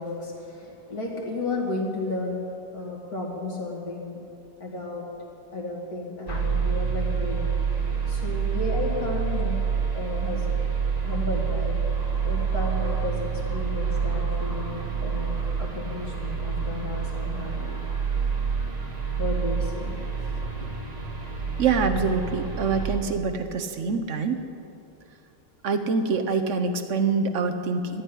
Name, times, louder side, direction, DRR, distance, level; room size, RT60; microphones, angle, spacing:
voice 1, 0.0-2.4 2.7-4.2 4.6-5.0 5.5-7.5 8.1-9.6 9.9-10.5 11.0-11.7 12.2-20.2 20.5-20.7, left 2 dB, 55° left, -2 dB, 2.7 m, -33 dB
sound 1, 6.3-23.0, right 6 dB, 25° right, 1.6 m, -27 dB
voice 2, 21.6-24.4 25.6-28.0, right 4 dB, 55° right, 8 dB, 1.0 m, -25 dB
12.0 x 9.1 x 10.0 m, 2.7 s
omnidirectional pair, 1.9 m